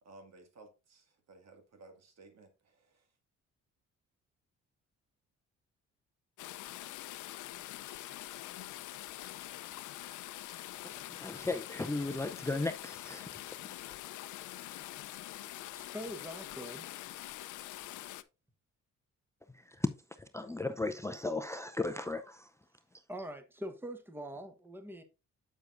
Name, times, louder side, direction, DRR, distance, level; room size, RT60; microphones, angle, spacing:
voice 1, 0.0-3.1, right 3 dB, 60° right, 2.1 m, -57 dB
sound 1, 6.4-18.2, left 15 dB, 80° left, 0.6 m, -45 dB
voice 2, 10.8-13.6 19.5-22.5, left 2 dB, 10° left, 0.5 m, -36 dB
voice 3, 15.7-16.9 23.1-25.0, equal, 5° right, 1.2 m, -43 dB
8.1 x 7.0 x 2.5 m
cardioid pair, 90°, 30 cm